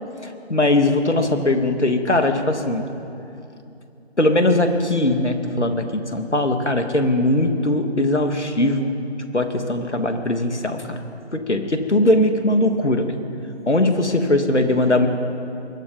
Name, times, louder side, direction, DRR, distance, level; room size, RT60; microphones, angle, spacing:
voice 1, 0.2-2.8 4.2-8.9 9.3-11.0 11.3-13.1 13.7-15.1, left 1 dB, 85° left, 5 dB, 3.0 m, -20 dB
27.5 x 22.0 x 5.4 m, 2.6 s
figure-of-eight pair, 180°, 34 cm